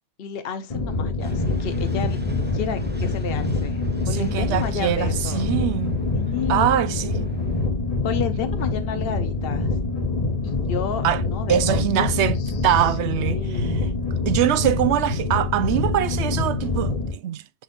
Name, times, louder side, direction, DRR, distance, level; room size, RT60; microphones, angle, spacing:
voice 1, 0.2-2.2 2.5-5.5 6.1-6.7 8.0-9.7 10.4-13.8, left 7 dB, 65° left, 1.0 m, -31 dB
sound 1, 0.7-17.1, left 3 dB, 35° left, 1.1 m, -25 dB
sound 2, 1.2-7.7, equal, 10° right, 0.9 m, -40 dB
voice 2, 4.1-6.0 6.5-7.4 11.0-11.2 11.5-12.4 12.6-13.9 14.3-17.4, right 11 dB, 85° right, 0.9 m, -23 dB
10.5 x 4.3 x 2.5 m
omnidirectional pair, 1.1 m